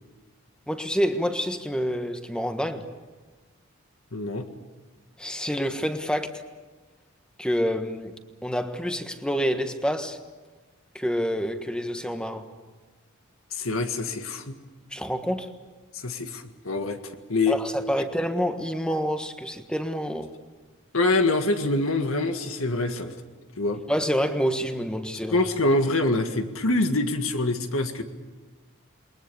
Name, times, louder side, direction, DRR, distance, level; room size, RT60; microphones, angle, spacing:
voice 1, 0.7-2.9 5.2-6.4 7.4-10.2 10.9-12.5 14.9-15.5 17.5-20.3 23.9-25.4, equal, 5° left, 1.4 m, -27 dB
voice 2, 4.1-4.5 13.5-14.6 15.9-17.0 17.3-17.6 20.9-23.2 23.6-23.8 25.3-28.0, left 2 dB, 80° left, 1.8 m, -25 dB
28.5 x 22.0 x 7.0 m
head